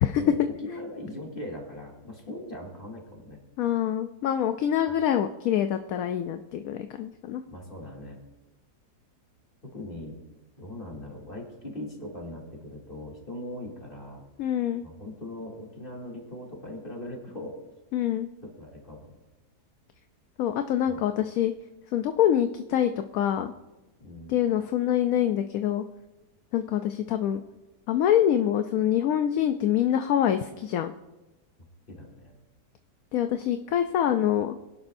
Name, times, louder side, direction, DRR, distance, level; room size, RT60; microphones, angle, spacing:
voice 1, 0.2-3.4 7.5-8.2 9.6-10.2 10.6-14.2 14.8-17.6 18.4-19.1 20.8-21.0 24.0-24.4 31.9-32.3, left 1 dB, 30° left, -2 dB, 2.9 m, -40 dB
voice 2, 3.6-7.4 14.4-14.8 17.9-18.3 20.4-21.5 21.9-23.5 24.3-25.8 26.5-27.4 27.9-30.9 33.1-34.5, left 10 dB, 70° left, 8 dB, 0.9 m, -25 dB
22.5 x 11.5 x 2.6 m, 1.0 s
omnidirectional pair, 1.8 m